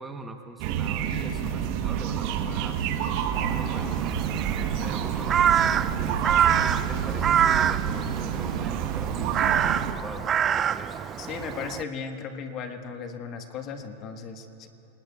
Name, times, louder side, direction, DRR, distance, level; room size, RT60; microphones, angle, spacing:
voice 1, 0.0-4.0 4.6-11.0, right 3 dB, 15° right, 5 dB, 1.0 m, -42 dB
sound 1, 0.6-9.9, right 8 dB, 55° right, 1.1 m, -28 dB
Crow, 3.3-11.8, right 8 dB, 30° right, 0.4 m, -26 dB
voice 2, 11.2-14.7, left 6 dB, 45° left, 6 dB, 1.4 m, -36 dB
29.0 x 19.5 x 2.4 m, 3.0 s
hypercardioid pair, 100°, 0 cm